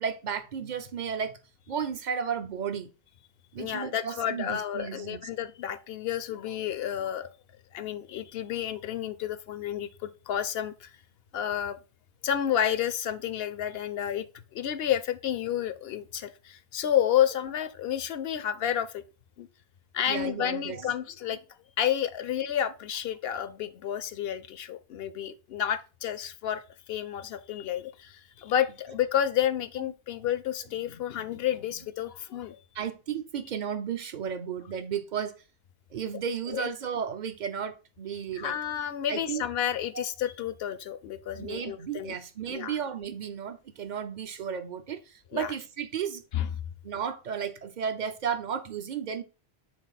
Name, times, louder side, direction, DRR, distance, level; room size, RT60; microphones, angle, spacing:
voice 1, 0.0-1.3 1.7-2.9 3.5-5.2 20.1-20.9 32.7-35.3 35.9-38.6 39.1-39.4 39.9-40.0 41.4-46.2 46.8-49.2, right 7 dB, 50° right, 0.7 m, -33 dB
voice 2, 3.6-7.3 7.7-10.9 11.3-11.8 12.2-14.3 14.5-19.0 19.4-19.5 19.9-21.4 21.8-32.6 36.5-36.7 38.3-42.1 42.5-42.8 45.3-45.5 46.3-46.5, left 10 dB, 70° left, 0.8 m, -30 dB
6.2 x 3.9 x 4.0 m
omnidirectional pair, 1.1 m